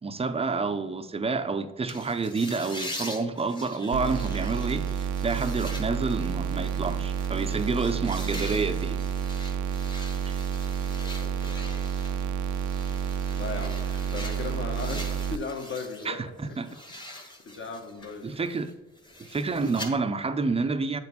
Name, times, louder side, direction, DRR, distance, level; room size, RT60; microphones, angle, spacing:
voice 1, 0.0-9.0 10.3-10.4 16.0-16.8 18.2-18.7 19.2-21.0, right 4 dB, 20° right, 0.5 m, -29 dB
sound 1, 1.9-16.1 16.4-19.9, left 1 dB, 15° left, 1.2 m, -43 dB
sound 2, 3.9-15.4, right 7 dB, 75° right, 0.4 m, -30 dB
voice 2, 10.9-11.7 13.3-16.6 16.9-17.0 17.5-18.4, left 4 dB, 40° left, 1.2 m, -37 dB
7.9 x 4.3 x 4.1 m
cardioid pair, 90°, 30 cm